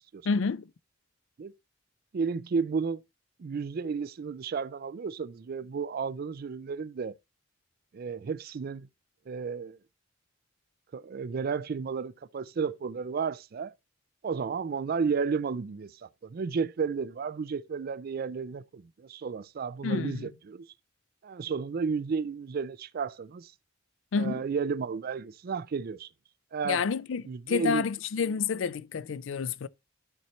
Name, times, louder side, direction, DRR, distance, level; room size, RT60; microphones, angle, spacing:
voice 1, 0.3-0.7 19.8-20.3 24.1-24.4 26.6-29.7, left 5 dB, 70° left, 0.4 m, -29 dB
voice 2, 2.1-3.0 3.4-7.2 7.9-8.9 9.3-9.8 10.9-13.7 14.2-20.7 21.2-23.5 24.2-26.1 26.5-26.8 27.3-27.9, right 5 dB, 50° right, 0.4 m, -32 dB
12.0 x 4.3 x 3.0 m
head